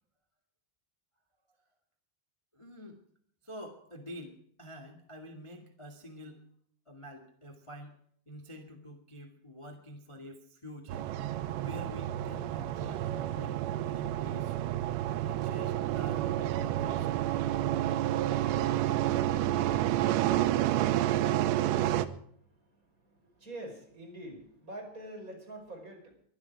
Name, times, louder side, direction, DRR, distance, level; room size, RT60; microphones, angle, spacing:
voice 1, 2.5-3.0 3.4-6.4 6.8-7.9 8.2-11.1 11.6-13.1 13.4-13.6 13.9-14.6 15.1-16.3 16.6-17.1 21.1-21.2, equal, 20° left, 2 dB, 0.8 m, -47 dB
sound 1, 10.9-22.1, right 13 dB, 90° right, 3.1 m, -29 dB
voice 2, 20.8-26.2, right 1 dB, 20° right, 2 dB, 5.3 m, -48 dB
23.0 x 11.5 x 4.7 m, 0.63 s
omnidirectional pair, 4.9 m